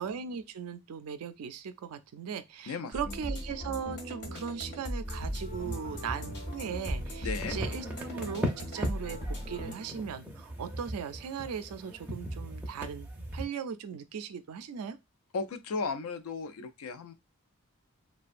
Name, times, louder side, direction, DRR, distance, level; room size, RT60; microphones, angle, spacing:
voice 1, 0.0-15.0, right 7 dB, 85° right, 0.4 m, -38 dB
voice 2, 2.7-3.1 7.2-7.6 15.3-17.1, left 4 dB, 75° left, 0.4 m, -35 dB
sound 1, 2.9-9.7, equal, 50° left, 0.7 m, -39 dB
sound 2, 5.1-13.4, equal, 5° right, 0.4 m, -39 dB
2.5 x 2.2 x 2.4 m
head